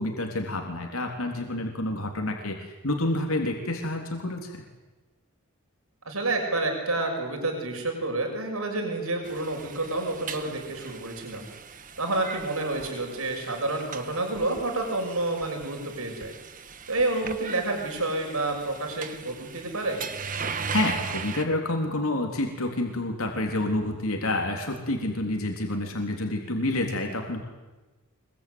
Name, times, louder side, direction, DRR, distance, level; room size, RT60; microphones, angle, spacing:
voice 1, 0.0-4.6 20.7-27.4, left 1 dB, 75° left, 2 dB, 3.6 m, -28 dB
voice 2, 6.0-11.5 12.0-16.3 16.9-20.0, right 2 dB, 80° right, 2 dB, 6.5 m, -29 dB
sound 1, 9.2-21.4, right 5 dB, 40° right, 1.4 m, -39 dB
25.0 x 22.5 x 9.6 m, 1.2 s
head